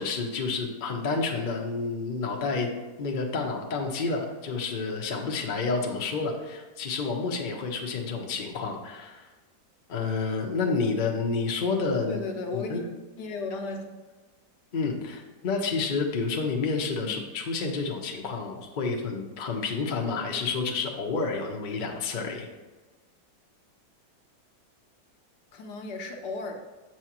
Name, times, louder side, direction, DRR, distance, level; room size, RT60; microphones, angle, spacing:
voice 1, 0.0-2.7 3.0-9.3 9.9-12.2 12.5-12.9 14.7-22.5, left 4 dB, 45° left, 1 dB, 0.6 m, -29 dB
voice 2, 12.0-12.8 13.2-13.8 17.1-17.3 25.5-26.6, left 3 dB, 75° left, 3 dB, 1.4 m, -35 dB
7.4 x 6.1 x 3.0 m, 1.2 s
omnidirectional pair, 1.9 m